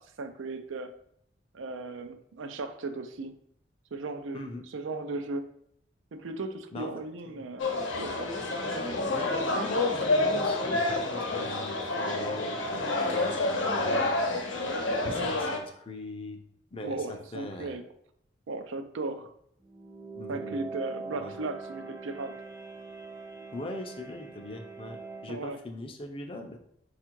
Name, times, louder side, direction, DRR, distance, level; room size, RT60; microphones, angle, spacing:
voice 1, 0.2-0.9 1.5-3.3 3.9-5.5 6.1-7.7 8.0-8.3 15.1-15.3 16.8-17.8 18.5-19.3 20.3-22.4 25.3-25.6, right 3 dB, 90° right, 8 dB, 0.5 m, -36 dB
voice 2, 4.3-4.6 6.7-6.9 7.3-7.4 8.6-14.5 15.0-16.4 16.7-17.8 20.1-20.6 21.2-21.3 23.5-25.0 25.2-26.6, left 1 dB, 30° left, 4 dB, 0.5 m, -41 dB
sound 1, 7.6-15.6, left 2 dB, 85° left, 0.8 m, -28 dB
sound 2, 19.6-25.4, right 4 dB, 15° right, 0.6 m, -42 dB
4.3 x 2.4 x 4.5 m, 0.72 s
head